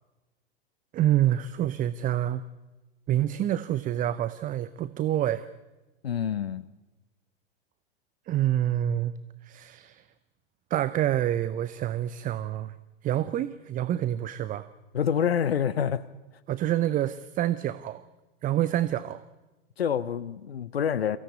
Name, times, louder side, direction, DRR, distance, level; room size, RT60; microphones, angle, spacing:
voice 1, 0.9-2.4 3.1-5.5 8.3-9.1 9.4-10.0 10.7-12.7 13.0-14.7 16.5-18.0 18.4-19.2, right 12 dB, 25° right, 15 dB, 0.7 m, -27 dB
voice 2, 6.0-6.6 14.9-16.0 19.8-21.2, left 8 dB, 80° left, 16 dB, 0.8 m, -27 dB
24.5 x 16.5 x 8.3 m, 1.1 s
figure-of-eight pair, 95°, 30 cm